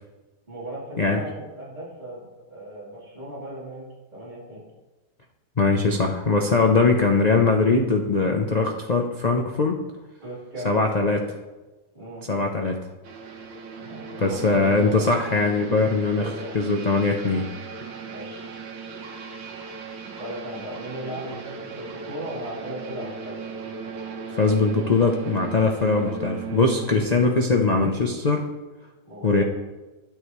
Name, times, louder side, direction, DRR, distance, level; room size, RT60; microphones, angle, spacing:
voice 1, 0.5-3.9 4.1-4.6 10.2-10.9 11.9-12.3 13.8-15.1 16.1-16.5 18.0-18.5 20.2-23.4 26.9-27.0 29.1-29.4, right 1 dB, 25° right, -9 dB, 3.9 m, -37 dB
voice 2, 5.6-9.8 10.6-11.2 12.3-12.8 14.2-17.5 24.4-28.5 29.2-29.4, left 3 dB, 85° left, 2 dB, 0.3 m, -21 dB
sound 1, 13.0-26.9, right 5 dB, 90° right, 1.8 m, -37 dB
12.5 x 9.9 x 3.2 m, 1.1 s
omnidirectional pair, 1.9 m